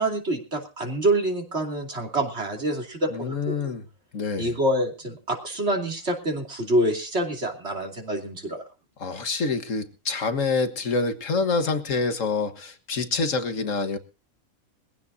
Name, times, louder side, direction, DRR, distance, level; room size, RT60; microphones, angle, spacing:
voice 1, 0.0-3.7 4.4-8.6, right 1 dB, 50° right, 2 dB, 3.1 m, -26 dB
voice 2, 3.1-3.9 4.1-4.5 9.0-14.0, left 4 dB, 65° left, 9 dB, 1.8 m, -26 dB
21.5 x 16.0 x 2.7 m, 0.33 s
omnidirectional pair, 1.5 m